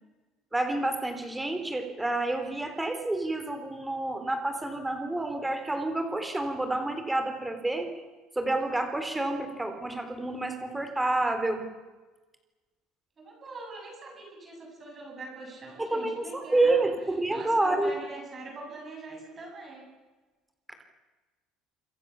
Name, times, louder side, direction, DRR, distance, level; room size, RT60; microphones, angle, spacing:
voice 1, 0.5-7.9 8.4-11.6 15.8-17.9, right 2 dB, 5° right, 7 dB, 3.7 m, -29 dB
voice 2, 13.2-16.9 17.3-19.9, right 3 dB, 25° right, 1 dB, 7.5 m, -43 dB
27.5 x 26.0 x 7.2 m, 1.2 s
cardioid pair, 165°, 0 cm